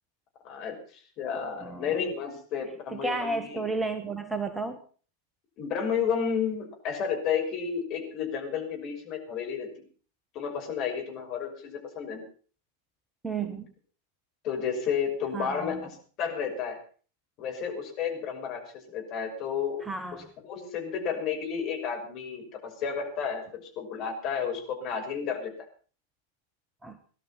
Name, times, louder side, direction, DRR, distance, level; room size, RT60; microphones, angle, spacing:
voice 1, 0.4-0.8 1.2-3.6 5.6-9.7 10.3-12.2 14.4-15.8 16.2-16.8 17.4-18.6 18.9-19.8 20.4-25.5, left 7 dB, 40° left, 2 dB, 6.1 m, -31 dB
voice 2, 1.6-2.0 2.9-4.8 13.2-13.7 15.3-15.8 19.8-20.3 26.8-27.0, right 3 dB, 10° right, 9 dB, 1.4 m, -32 dB
19.0 x 12.5 x 5.8 m, 0.41 s
figure-of-eight pair, 90°, 0 cm